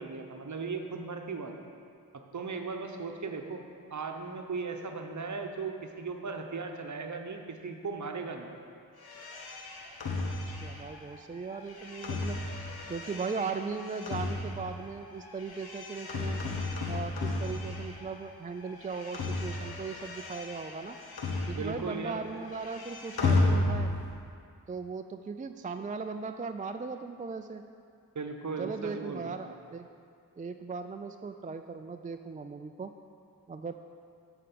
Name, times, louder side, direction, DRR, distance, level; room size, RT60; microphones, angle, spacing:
voice 1, 0.0-1.5 2.1-3.6 3.9-8.5 21.5-22.2 28.1-29.4, right 4 dB, 50° right, 4 dB, 0.9 m, -37 dB
sound 1, 9.0-18.3 18.5-22.0 22.2-24.2, left 2 dB, 85° left, 1.0 m, -34 dB
voice 2, 10.2-12.4 12.9-16.4 16.9-21.0 21.5-23.9 24.7-27.6 28.6-29.9 30.4-32.9 33.5-33.7, right 4 dB, 25° right, 7 dB, 0.3 m, -38 dB
7.7 x 4.9 x 6.8 m, 2.3 s
cardioid pair, 40°, 36 cm